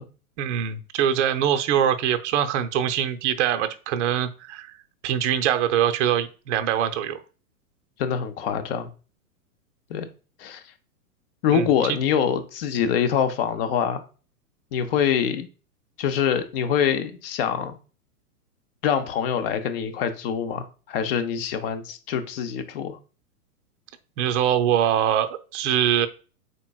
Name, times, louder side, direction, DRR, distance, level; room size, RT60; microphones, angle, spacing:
voice 1, 0.4-4.7 5.0-7.2 11.5-12.0 24.2-26.1, right 10 dB, 50° right, 0.6 m, -23 dB
voice 2, 8.0-8.9 9.9-10.1 10.4-10.6 11.4-14.0 14.7-15.5 16.0-17.8 18.8-23.0, left 8 dB, 40° left, 0.6 m, -25 dB
5.1 x 4.5 x 2.3 m
hypercardioid pair, 125°, 46 cm